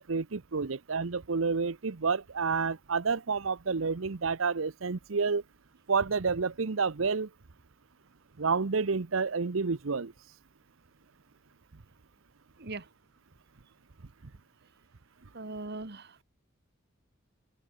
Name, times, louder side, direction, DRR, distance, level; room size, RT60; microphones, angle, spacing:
voice 1, 0.0-5.4 5.9-7.3 8.4-10.1, right 4 dB, 80° right, 0.8 m, -29 dB
voice 2, 15.3-16.2, right 3 dB, 55° right, 1.8 m, -40 dB
open air
head